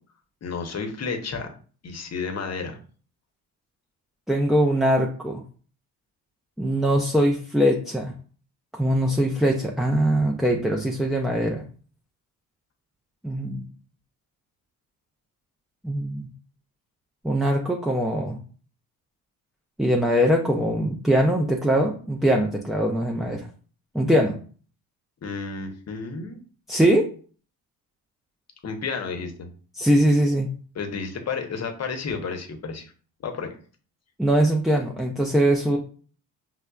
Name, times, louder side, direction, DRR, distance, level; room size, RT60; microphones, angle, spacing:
voice 1, 0.4-1.5 1.8-2.8 25.2-26.4 28.6-29.5 30.7-32.9 33.2-33.5, left 5 dB, 40° left, 4 dB, 0.8 m, -31 dB
voice 2, 4.3-5.4 6.6-8.1 8.7-11.6 13.2-13.6 15.8-16.3 17.2-18.4 19.8-23.5 23.9-24.3 26.7-27.1 29.8-30.5 34.2-35.8, equal, ahead, 0 dB, 0.4 m, -22 dB
5.3 x 2.0 x 2.3 m, 0.42 s
supercardioid pair, 60°, 41 cm